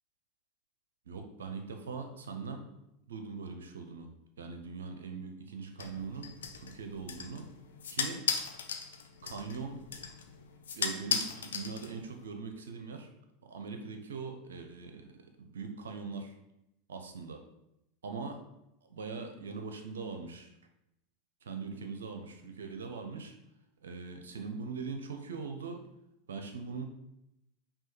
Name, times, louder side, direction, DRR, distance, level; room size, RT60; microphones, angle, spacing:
voice 1, 1.1-2.6 3.1-4.1 4.4-7.5 7.9-8.3 9.2-9.8 10.8-13.1 13.4-16.3 16.9-17.4 18.0-18.4 18.8-20.5 21.4-23.4 23.8-25.8 26.3-26.8, right 5 dB, 75° right, 5 dB, 0.5 m, -41 dB
sound 1, 5.8-12.2, left 6 dB, 75° left, 0.4 m, -37 dB
5.4 x 2.3 x 3.1 m, 0.85 s
hypercardioid pair, 85°, 0 cm